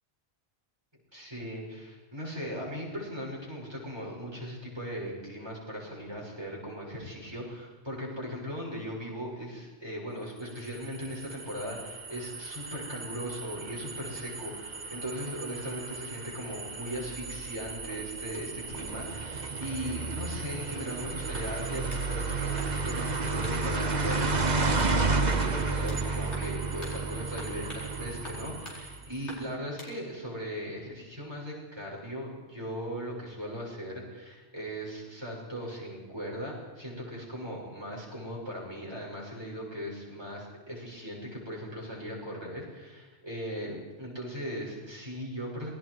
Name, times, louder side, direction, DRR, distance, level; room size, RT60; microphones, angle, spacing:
voice 1, 1.1-45.7, equal, 25° right, -4 dB, 6.7 m, -38 dB
sound 1, 10.6-29.2, right 3 dB, 40° right, 1.3 m, -32 dB
sound 2, 21.3-22.1 22.6-23.0 23.4-23.6 24.1-24.3 24.8-25.0 25.3-26.0 26.3-26.5 26.8-27.0 27.4-27.9 28.2-28.8 29.3-29.9, left 1 dB, 85° left, 5.1 m, -44 dB
27.0 x 20.0 x 4.9 m, 1.3 s
omnidirectional pair, 1.1 m